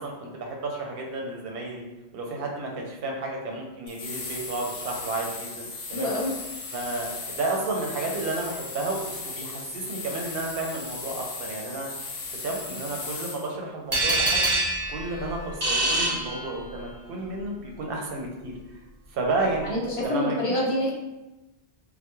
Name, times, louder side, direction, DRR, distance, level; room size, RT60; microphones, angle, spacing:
voice 1, 0.0-1.8 2.1-6.1 6.7-11.9 12.3-14.4 14.9-18.5 19.1-20.4, right 2 dB, 70° right, 0 dB, 0.8 m, -32 dB
sound 1, 3.9-13.5, left 3 dB, 75° left, 0.8 m, -37 dB
voice 2, 5.9-6.3 12.7-12.8 19.6-20.9, left 1 dB, 50° left, -3 dB, 0.4 m, -26 dB
sound 2, 13.9-16.9, right 1 dB, 40° right, 1.0 m, -25 dB
2.2 x 2.1 x 2.9 m, 1.0 s
omnidirectional pair, 1.0 m